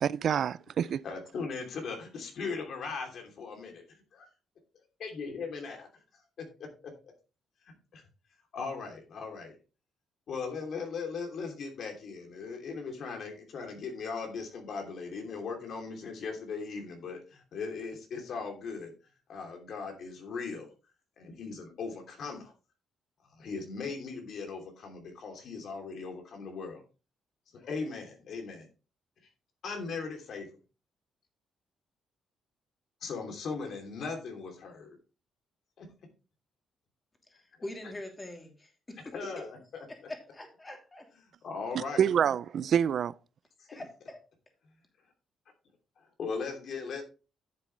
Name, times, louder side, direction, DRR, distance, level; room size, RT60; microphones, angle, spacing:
voice 1, 0.0-1.0 41.7-43.1, right 8 dB, 60° right, 0.3 m, -27 dB
voice 2, 1.0-3.8 4.1-4.3 5.0-5.9 6.4-6.9 7.6-8.0 8.5-9.5 10.3-18.9 19.3-20.7 21.2-22.5 23.3-26.8 27.5-28.7 29.6-30.5 33.0-35.0 35.8-35.9 39.1-39.8 41.4-42.1 43.7-43.8 46.2-47.0, left 4 dB, 65° left, 2.9 m, -38 dB
voice 3, 37.3-39.4 39.9-41.1 43.7-44.2, left 1 dB, 20° left, 2.9 m, -44 dB
10.5 x 7.5 x 3.2 m
cardioid pair, 90°, 0 cm